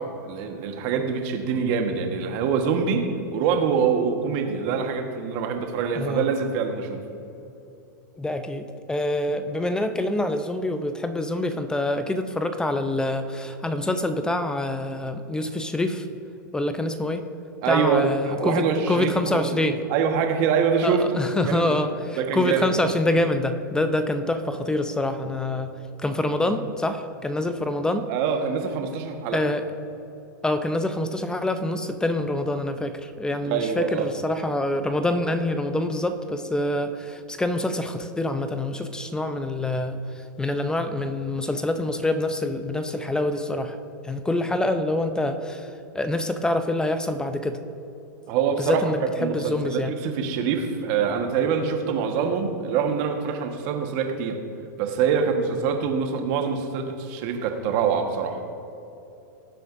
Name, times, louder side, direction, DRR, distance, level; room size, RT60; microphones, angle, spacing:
voice 1, 0.0-7.0 17.6-19.6 19.9-21.1 21.5-21.8 22.1-22.7 26.4-26.5 28.1-29.4 33.4-34.1 48.3-48.8 49.2-54.4 54.8-58.4, right 6 dB, 50° right, 4 dB, 1.4 m, -25 dB
voice 2, 8.2-16.1 16.5-17.3 17.7-19.8 20.8-25.7 26.0-28.1 29.3-29.6 30.4-40.0 40.4-43.8 44.0-45.7 45.9-47.6 48.6-50.0, left 1 dB, 5° left, 9 dB, 0.6 m, -26 dB
18.5 x 7.5 x 2.6 m, 2.8 s
hypercardioid pair, 125°, 10 cm